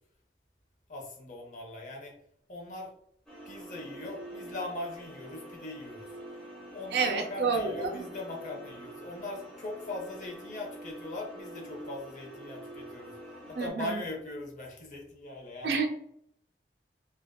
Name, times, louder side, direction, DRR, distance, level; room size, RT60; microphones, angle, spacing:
voice 1, 0.9-2.1 2.5-2.9 3.5-6.1 6.7-13.1 13.5-15.8, left 2 dB, 45° left, 0 dB, 0.6 m, -40 dB
sound 1, 3.3-13.7, right 1 dB, 5° left, 0.6 m, -46 dB
voice 2, 6.9-8.1 13.5-14.0 15.6-15.9, right 5 dB, 75° right, 4 dB, 0.5 m, -29 dB
2.4 x 2.3 x 2.2 m, 0.70 s
head